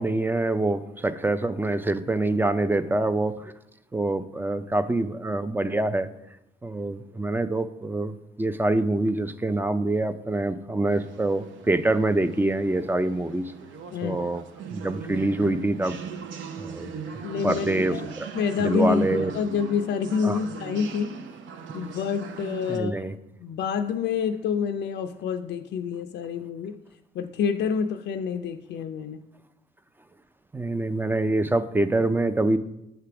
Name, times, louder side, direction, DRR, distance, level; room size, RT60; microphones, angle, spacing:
voice 1, 0.0-3.5 3.9-6.1 6.6-13.5 14.0-14.4 14.7-16.0 16.6-16.9 17.4-18.3 18.6-19.3 20.2-20.4 22.7-23.1 30.5-32.6, right 2 dB, 10° right, 11 dB, 0.4 m, -25 dB
sound 1, 10.9-22.8, right 6 dB, 75° right, 0.6 m, -39 dB
voice 2, 13.9-14.3 17.2-18.1 18.3-21.2 21.7-23.0 23.4-26.8 27.1-29.2, left 6 dB, 60° left, 6 dB, 0.4 m, -28 dB
7.5 x 3.4 x 5.8 m, 0.88 s
cardioid pair, 90°, 20 cm